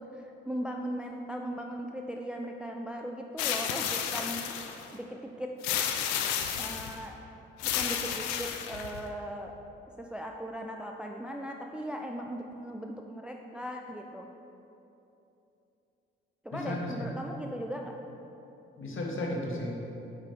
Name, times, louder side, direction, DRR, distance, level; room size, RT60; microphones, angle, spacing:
voice 1, 0.0-4.5 4.9-5.8 6.6-7.2 7.6-9.5 10.0-14.3 16.4-17.9, equal, 5° right, 2 dB, 0.5 m, -38 dB
sound 1, 3.4-4.9 5.6-7.0 7.6-9.0, left 9 dB, 70° left, 0.6 m, -32 dB
voice 2, 16.5-17.1 18.8-19.8, left 1 dB, 45° left, -1 dB, 1.5 m, -34 dB
8.6 x 3.9 x 4.5 m, 2.9 s
hypercardioid pair, 45°, 29 cm